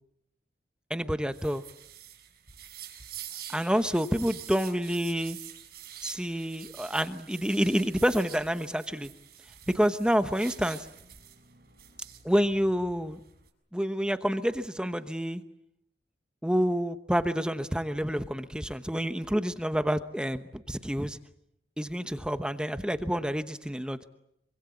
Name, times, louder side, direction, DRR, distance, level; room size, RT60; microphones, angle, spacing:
voice 1, 0.9-1.6 3.5-5.4 6.0-9.1 9.7-10.9 12.2-13.2 13.7-15.4 16.4-21.2 21.8-24.0, equal, 5° right, 10 dB, 1.0 m, -28 dB
sound 1, 1.3-13.5, right 10 dB, 60° right, 6.1 m, -47 dB
26.0 x 24.5 x 8.4 m, 0.78 s
head